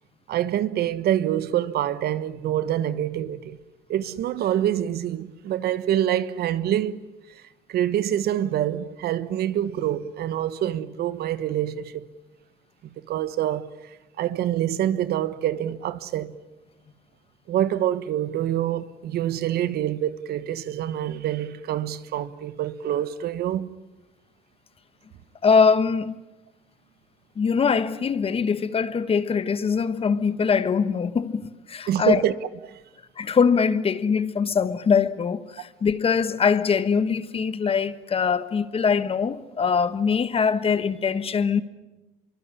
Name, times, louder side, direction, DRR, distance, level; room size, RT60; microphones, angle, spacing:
voice 1, 0.3-3.6 3.9-7.0 7.7-12.1 13.1-13.7 14.2-16.3 17.5-23.7 31.9-32.3 32.6-32.8, right 11 dB, 70° right, 1.2 m, -26 dB
voice 2, 25.4-26.2 27.4-32.2 33.2-41.6, left 6 dB, 35° left, 1.3 m, -22 dB
25.5 x 24.0 x 9.8 m
cardioid pair, 110°, 17 cm